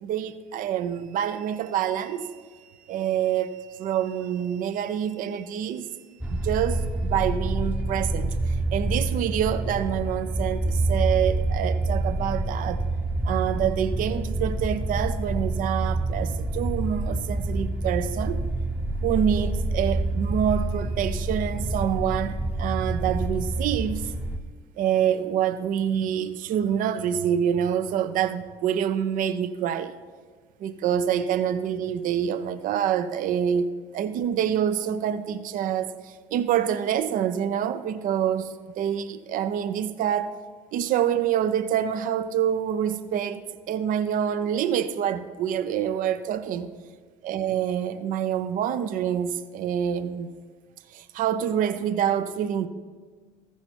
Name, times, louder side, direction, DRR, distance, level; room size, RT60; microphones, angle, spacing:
voice 1, 0.0-2.4 2.9-5.9 6.3-12.8 13.2-18.4 19.0-24.1 24.8-29.9 30.6-33.7 33.9-40.4 40.7-46.7 47.2-50.3 50.9-52.7, right 9 dB, 60° right, 0.6 m, -26 dB
sound 1, 6.2-24.4, right 2 dB, 10° right, 0.8 m, -27 dB
14.5 x 5.7 x 4.5 m
hypercardioid pair, 65°, 16 cm